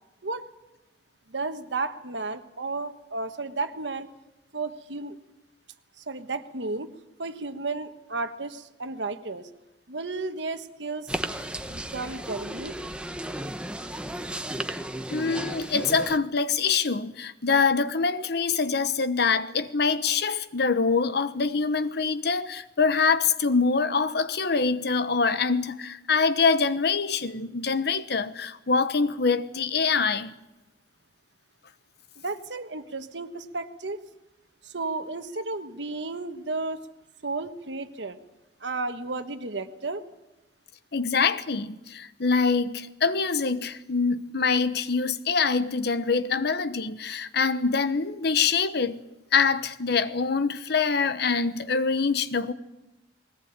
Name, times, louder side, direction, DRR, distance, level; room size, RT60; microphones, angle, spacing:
voice 1, 1.3-4.1 4.5-5.2 6.0-6.9 7.2-9.5 9.9-11.2 11.7-12.8 32.2-34.0 34.6-36.8 37.2-38.2 38.6-40.0, right 3 dB, 75° right, 1.4 m, -33 dB
sound 1, 11.1-16.2, right 1 dB, 5° right, 1.0 m, -34 dB
voice 2, 15.1-30.3 40.9-49.0 49.3-52.5, left 5 dB, 65° left, 1.0 m, -25 dB
20.5 x 18.5 x 8.8 m
head